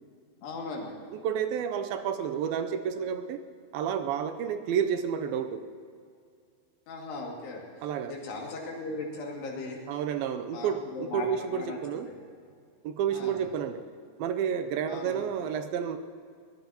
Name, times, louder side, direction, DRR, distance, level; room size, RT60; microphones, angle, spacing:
voice 1, 0.4-0.9 6.9-7.6 8.1-9.8 10.5-12.2 13.1-13.5 14.9-15.2, left 3 dB, 80° left, -2 dB, 4.4 m, -38 dB
voice 2, 1.2-3.4 3.7-5.6 7.8-8.1 9.9-12.1 12.8-13.8 14.2-16.0, right 8 dB, 80° right, 8 dB, 2.3 m, -30 dB
23.5 x 19.5 x 2.9 m, 2.2 s
omnidirectional pair, 4.7 m